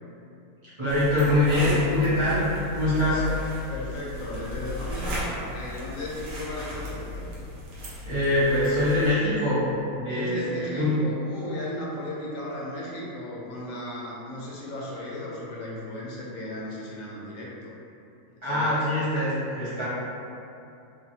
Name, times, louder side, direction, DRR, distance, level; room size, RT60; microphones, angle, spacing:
voice 1, 0.8-2.5 2.8-3.2 8.0-9.6 9.9-10.9 18.4-19.8, left 1 dB, 45° right, -13 dB, 0.4 m, -23 dB
sound 1, 0.9-9.1, left 1 dB, 90° right, 1.1 m, -35 dB
voice 2, 3.0-3.4 3.7-7.3 10.1-17.7 18.4-18.7, left 1 dB, 70° left, -5 dB, 0.9 m, -36 dB
2.6 x 2.5 x 2.7 m, 2.7 s
omnidirectional pair, 1.6 m